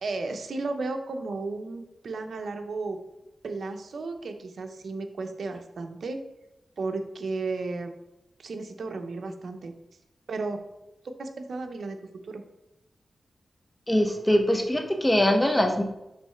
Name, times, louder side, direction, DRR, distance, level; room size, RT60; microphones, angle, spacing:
voice 1, 0.0-3.0 3.4-6.2 6.8-7.9 8.4-9.7 10.3-10.6 11.0-12.4, right 3 dB, 75° right, 6 dB, 0.7 m, -34 dB
voice 2, 13.9-15.8, left 1 dB, 15° left, 4 dB, 1.0 m, -22 dB
6.0 x 3.1 x 5.8 m, 0.92 s
wide cardioid pair, 80°, 0 cm